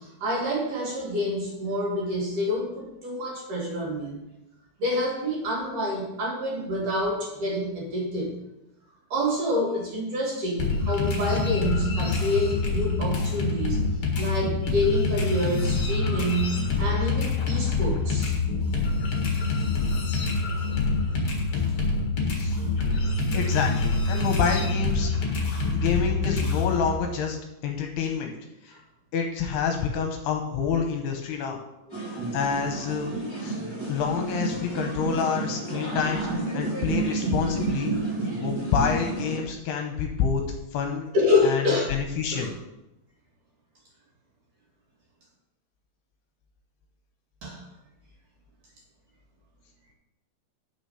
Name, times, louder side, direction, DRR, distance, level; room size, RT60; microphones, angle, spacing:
voice 1, 0.0-4.2 4.8-8.4 9.1-13.8 14.2-18.3 41.1-41.9 42.3-42.5 47.4-47.6, left 1 dB, 50° right, -3 dB, 3.6 m, -27 dB
sound 1, 10.6-26.9, left 3 dB, 50° left, 1.8 m, -26 dB
voice 2, 23.3-25.1 25.7-27.4 27.6-28.3 28.6-28.8 29.1-31.6 32.1-33.1 33.4-33.6 33.9-38.0 38.3-40.4 40.7-41.1 41.4-42.5, left 6 dB, 75° left, 3 dB, 2.7 m, -28 dB
sound 2, 31.9-39.4, right 3 dB, 5° left, 2.4 m, -30 dB
9.7 x 6.4 x 5.7 m, 0.92 s
omnidirectional pair, 5.1 m